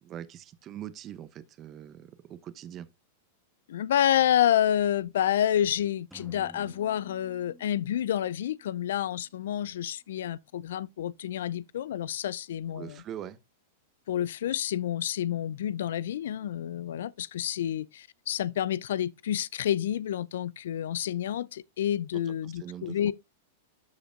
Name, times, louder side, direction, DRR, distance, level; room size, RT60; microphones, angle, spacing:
voice 1, 0.0-2.9 12.7-13.4 22.1-23.0, right 10 dB, 35° right, 0.8 m, -42 dB
voice 2, 3.7-13.0 14.1-23.1, left 10 dB, 70° left, 0.4 m, -29 dB
sound 1, 6.1-9.9, right 1 dB, 5° right, 0.7 m, -54 dB
13.0 x 5.1 x 2.4 m
hypercardioid pair, 105°, 0 cm